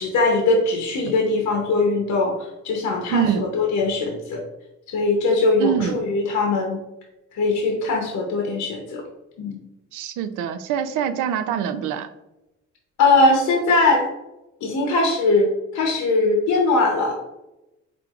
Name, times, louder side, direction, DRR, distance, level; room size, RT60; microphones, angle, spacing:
voice 1, 0.0-4.4 4.9-6.8 7.3-9.0 9.4-9.6 13.0-14.0 14.6-17.1, left 3 dB, 75° left, 1 dB, 0.8 m, -21 dB
voice 2, 3.1-3.5 5.6-6.0 9.9-12.1, right 8 dB, 90° right, 10 dB, 0.5 m, -24 dB
4.4 x 3.8 x 2.4 m, 0.96 s
cardioid pair, 90°, 30 cm